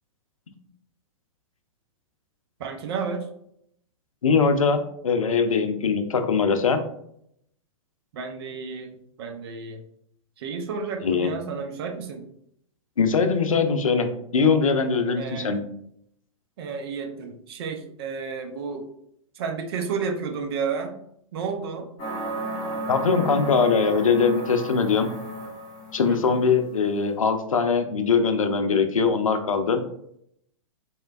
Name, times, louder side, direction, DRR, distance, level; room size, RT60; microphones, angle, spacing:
voice 1, 2.6-3.3 8.1-9.8 10.4-12.3 15.2-15.6 16.6-18.9 19.3-20.9 21.3-21.9 26.1-26.4, right 5 dB, 45° right, 5 dB, 0.6 m, -32 dB
voice 2, 4.2-6.8 11.0-11.4 13.0-15.6 22.9-25.1 25.9-29.8, left 5 dB, 70° left, 8 dB, 0.5 m, -22 dB
sound 1, 22.0-26.3, right 1 dB, 25° left, 1.5 m, -33 dB
4.2 x 3.2 x 2.4 m, 0.71 s
figure-of-eight pair, 110°, 18 cm